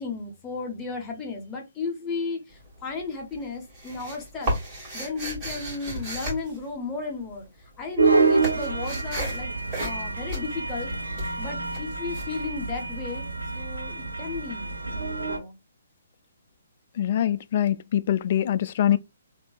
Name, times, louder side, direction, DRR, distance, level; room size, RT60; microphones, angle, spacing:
voice 1, 0.0-4.6 4.9-7.5 7.8-10.9 11.4-13.3 13.5-15.5, left 4 dB, 15° left, 1.1 m, -34 dB
sound 1, 2.5-3.0 3.3-7.4 7.6-13.2, equal, 25° right, 2.0 m, -34 dB
sound 2, 8.0-15.4, right 4 dB, 85° right, 0.9 m, -27 dB
voice 2, 17.0-19.0, left 11 dB, 45° left, 0.3 m, -23 dB
3.6 x 2.7 x 2.3 m
figure-of-eight pair, 135°, 0 cm